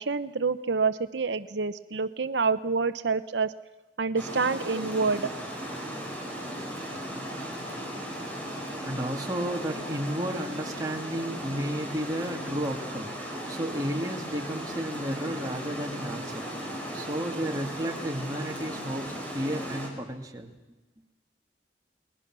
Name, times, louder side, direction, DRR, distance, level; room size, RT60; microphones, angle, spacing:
voice 1, 0.0-3.5 4.0-5.3, right 4 dB, 80° right, 11 dB, 0.8 m, -27 dB
Water, 4.2-19.9, equal, 10° left, 5.5 m, -36 dB
voice 2, 8.5-20.5, right 1 dB, 20° right, 1 dB, 2.5 m, -33 dB
29.5 x 20.5 x 6.2 m, 1.1 s
head